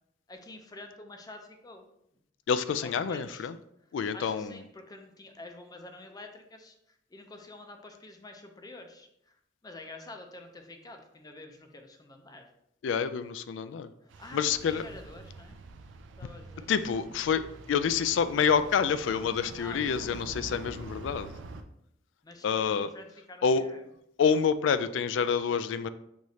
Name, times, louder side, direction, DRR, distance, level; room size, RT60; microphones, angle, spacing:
voice 1, 0.3-1.9 2.8-3.5 4.1-6.7 7.1-9.1 9.6-12.5 14.0-15.6 16.1-16.7 19.6-20.0 22.2-23.8, left 2 dB, 20° left, 5 dB, 0.5 m, -48 dB
voice 2, 2.5-3.6 3.9-4.6 12.8-13.9 14.3-14.8 16.7-21.3 22.4-22.9 23.4-23.6 24.2-25.9, left 6 dB, 75° left, 13 dB, 0.3 m, -27 dB
sound 1, 14.1-21.6, right 3 dB, 75° right, 0.4 m, -46 dB
6.3 x 3.0 x 2.7 m, 0.77 s
head